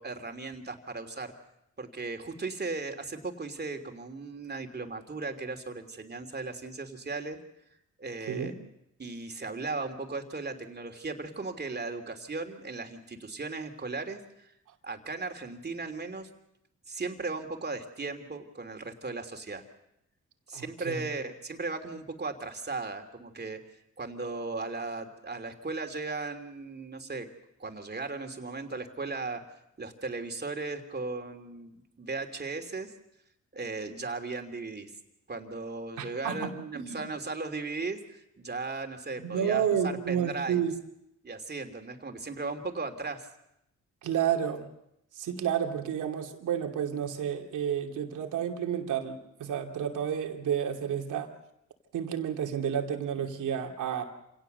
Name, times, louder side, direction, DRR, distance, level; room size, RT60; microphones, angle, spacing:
voice 1, 0.0-1.3 1.8-7.4 8.0-8.5 9.0-14.5 14.8-16.3 16.9-19.6 20.5-27.3 27.6-29.4 29.8-32.9 33.5-34.9 35.3-40.6 41.2-43.3, right 3 dB, 35° right, 5 dB, 3.0 m, -37 dB
voice 2, 20.5-21.1 36.0-37.0 39.2-40.7 44.0-44.7 45.1-51.3 51.9-54.0, right 8 dB, 85° right, 3 dB, 2.6 m, -31 dB
27.0 x 18.0 x 6.8 m, 0.82 s
cardioid pair, 75°, 30 cm